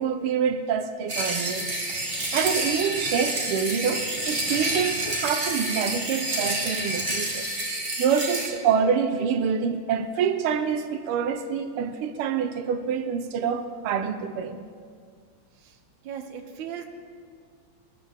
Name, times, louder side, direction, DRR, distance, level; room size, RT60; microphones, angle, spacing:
voice 1, 0.0-1.7 2.0-7.5 8.0-14.7, right 7 dB, 90° right, 1.6 m, -26 dB
sound 1, 1.1-8.5, right 2 dB, 30° right, 1.6 m, -28 dB
voice 2, 16.0-16.8, right 8 dB, 65° right, 1.6 m, -37 dB
21.0 x 13.0 x 3.5 m
omnidirectional pair, 2.4 m